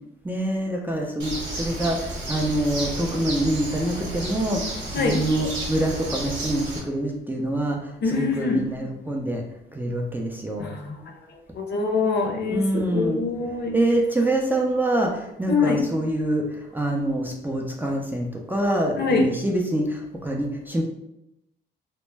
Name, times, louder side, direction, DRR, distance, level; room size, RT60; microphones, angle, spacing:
voice 1, 0.2-9.4 9.7-10.7 12.5-13.2 13.7-20.8, right 1 dB, 10° right, 0 dB, 0.4 m, -25 dB
Bird, 1.2-6.8, right 2 dB, 65° right, 0.8 m, -32 dB
voice 2, 8.0-8.6 10.6-11.0 11.6-13.8 15.5-15.8 19.0-19.2, left 4 dB, 55° left, 2 dB, 0.6 m, -24 dB
2.1 x 2.1 x 3.2 m, 0.84 s
cardioid pair, 90°, 20 cm